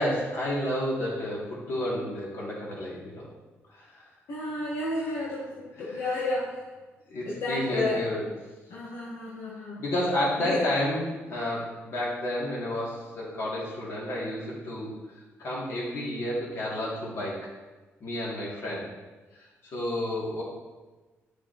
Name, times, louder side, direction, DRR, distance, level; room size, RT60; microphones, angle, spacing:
voice 1, 0.0-3.3 3.7-4.1 5.7-6.2 7.1-8.2 9.8-14.9 15.4-17.4 18.0-18.9 19.3-19.5 19.7-20.4, left 1 dB, 60° left, -5 dB, 2.9 m, -31 dB
voice 2, 4.3-6.5 7.2-8.0 8.7-9.8 10.4-10.6, left 2 dB, 90° left, -5 dB, 1.7 m, -31 dB
11.5 x 6.7 x 3.2 m, 1.2 s
cardioid pair, 130°, 5 cm